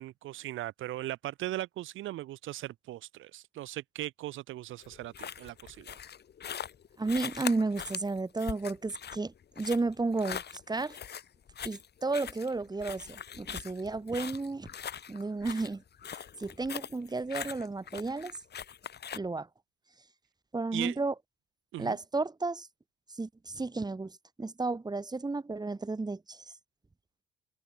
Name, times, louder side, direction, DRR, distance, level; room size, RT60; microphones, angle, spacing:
voice 1, 0.0-5.9 20.7-21.0 21.7-22.0, right 15 dB, 85° right, 1.2 m, -38 dB
sound 1, 4.8-19.2, left 8 dB, 55° left, 5.8 m, -42 dB
voice 2, 7.0-10.4 10.7-11.0 11.6-14.7 15.1-15.8 16.4-18.3 19.1-19.5 20.5-21.1 21.8-22.7 23.2-24.1 24.4-26.4, right 3 dB, 20° right, 2.9 m, -32 dB
cardioid pair, 90°, 20 cm